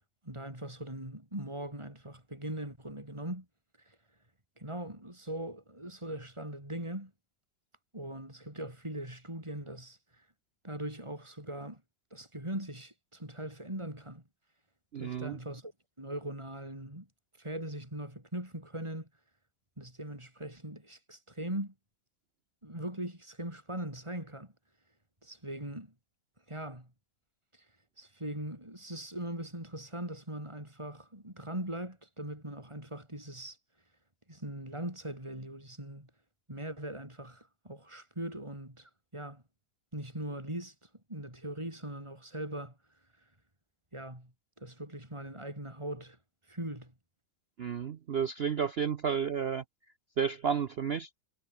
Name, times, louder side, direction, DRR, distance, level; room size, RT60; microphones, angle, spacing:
voice 1, 0.2-3.5 3.8-4.0 4.6-7.1 7.9-10.3 10.6-11.8 12.1-14.2 15.0-15.7 16.0-17.1 17.4-19.1 19.8-21.7 22.6-24.5 25.2-25.9 26.5-26.9 27.5-27.7 28.0-33.6 34.3-36.1 36.5-39.4 39.9-42.8 43.9-44.3 44.6-46.2 46.5-46.9, right 1 dB, 15° right, 7.1 m, -40 dB
voice 2, 14.9-15.4 47.6-49.6 50.2-51.1, right 7 dB, 60° right, 0.6 m, -31 dB
omnidirectional pair, 1.9 m